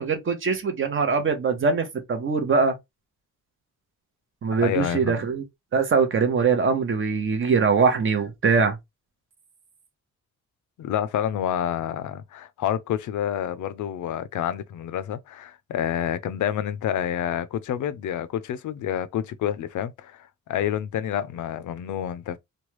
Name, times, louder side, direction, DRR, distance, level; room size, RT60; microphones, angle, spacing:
voice 1, 0.0-2.7 4.4-5.4 5.7-8.8, right 5 dB, 40° right, 0.8 m, -22 dB
voice 2, 4.6-5.2 10.8-22.4, left 10 dB, 75° left, 0.5 m, -28 dB
3.1 x 2.2 x 3.0 m
wide cardioid pair, 160°, 31 cm